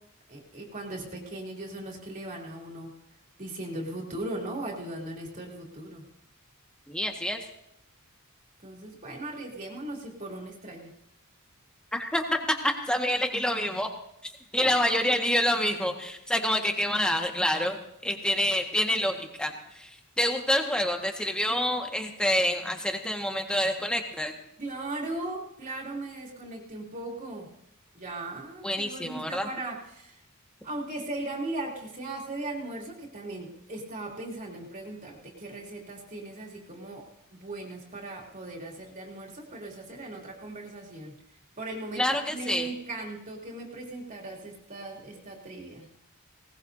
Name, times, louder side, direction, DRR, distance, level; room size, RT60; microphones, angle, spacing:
voice 1, 0.3-2.9 3.4-6.1 8.6-10.9 14.5-14.8 24.6-27.5 27.9-30.2 30.6-41.1 41.6-45.9, right 2 dB, 35° right, -1 dB, 3.1 m, -38 dB
voice 2, 6.9-7.4 11.9-13.9 14.2-19.9 20.2-24.3 28.6-29.5 41.9-42.7, left 1 dB, 5° left, 3 dB, 1.6 m, -27 dB
20.5 x 19.0 x 2.7 m, 0.81 s
head